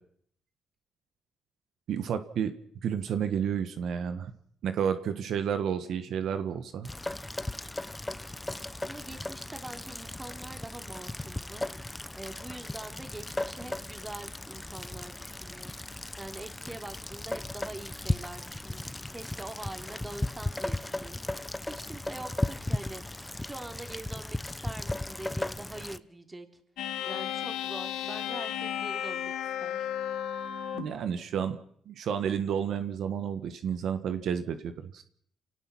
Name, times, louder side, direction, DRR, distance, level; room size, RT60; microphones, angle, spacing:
voice 1, 1.9-2.5 2.8-4.3 4.6-6.9 30.7-31.6 31.9-35.0, right 8 dB, 70° right, 10 dB, 1.4 m, -31 dB
Rain, 6.8-26.0, left 2 dB, 10° left, 0.8 m, -36 dB
voice 2, 8.8-11.7 12.1-15.8 16.2-23.0 23.4-26.5 27.0-29.3 29.6-29.9, right 2 dB, 20° right, 6 dB, 3.1 m, -44 dB
sound 1, 26.8-31.0, left 10 dB, 80° left, 1.9 m, -34 dB
28.5 x 18.0 x 6.1 m, 0.64 s
cardioid pair, 90°, 0 cm